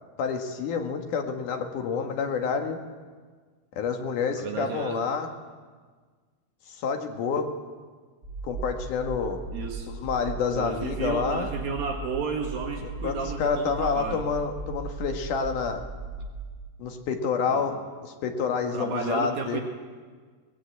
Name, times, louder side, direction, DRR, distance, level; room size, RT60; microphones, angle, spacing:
voice 1, 0.2-2.8 3.8-5.3 6.7-7.5 8.4-9.4 10.0-11.5 13.0-15.8 16.8-17.8 18.2-19.6, left 5 dB, 60° left, 4 dB, 2.8 m, -28 dB
voice 2, 4.4-5.0 9.5-9.9 10.5-14.2 17.5-17.7 18.7-19.6, right 5 dB, 65° right, 2 dB, 3.2 m, -32 dB
sound 1, 8.2-16.5, right 3 dB, 25° right, 5.6 m, -37 dB
19.0 x 18.5 x 8.2 m, 1.5 s
omnidirectional pair, 4.5 m